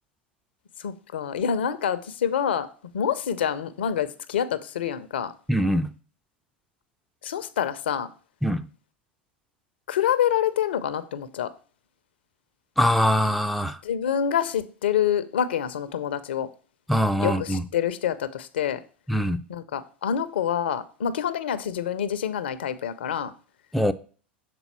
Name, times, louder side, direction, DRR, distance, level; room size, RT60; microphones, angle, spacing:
voice 1, 0.8-5.3 7.2-8.1 9.9-11.5 13.8-16.5 17.2-18.8 19.5-23.3, left 9 dB, 70° left, 0.5 m, -27 dB
voice 2, 5.5-5.9 8.4-8.7 12.8-13.8 16.9-17.6 19.1-19.4 23.7-23.9, equal, ahead, 0.3 m, -22 dB
6.8 x 4.0 x 4.3 m
figure-of-eight pair, 85°, 6 cm